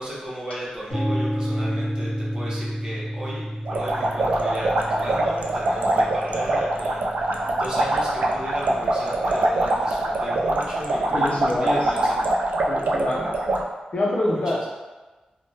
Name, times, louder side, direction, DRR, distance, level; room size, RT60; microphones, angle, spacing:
voice 1, 0.0-12.3 14.3-14.7, right 1 dB, 30° right, -7 dB, 0.8 m, -35 dB
sound 1, 0.9-8.8, equal, 35° left, 1.2 m, -31 dB
sound 2, 3.6-13.6, right 1 dB, 80° right, 0.3 m, -23 dB
voice 2, 11.1-11.9 12.7-13.3 13.9-14.7, left 1 dB, 50° left, -4 dB, 0.6 m, -25 dB
3.3 x 2.2 x 2.7 m, 1.2 s
wide cardioid pair, 120°, 3 cm